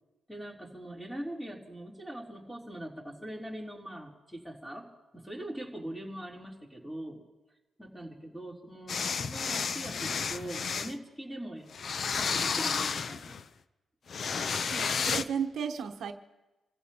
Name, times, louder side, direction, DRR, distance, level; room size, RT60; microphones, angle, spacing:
voice 1, 0.3-7.2 7.8-11.7 12.1-13.3, right 1 dB, 5° left, -2 dB, 3.4 m, -42 dB
sound 1, 8.9-10.9 11.7-13.4 14.1-15.2, left 5 dB, 55° left, 0.6 m, -31 dB
voice 2, 14.7-16.1, right 7 dB, 75° right, 6 dB, 1.0 m, -34 dB
27.0 x 15.0 x 2.9 m, 1.1 s
cardioid pair, 80°, 0 cm